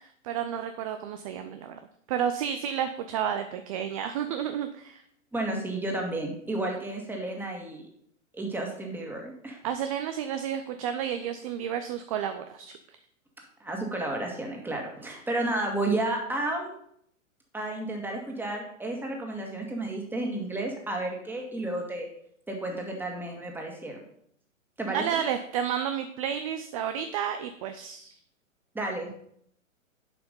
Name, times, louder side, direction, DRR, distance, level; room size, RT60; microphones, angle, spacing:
voice 1, 0.0-1.8 2.1-5.0 9.6-12.8 24.9-28.1, right 9 dB, 25° right, 8 dB, 0.5 m, -31 dB
voice 2, 5.3-7.9 8.3-9.6 13.6-16.7 17.5-22.1 22.5-24.0 24.8-25.2 28.7-29.1, right 2 dB, 5° right, 1 dB, 1.9 m, -32 dB
10.5 x 5.7 x 5.3 m, 0.69 s
figure-of-eight pair, 120°, 40 cm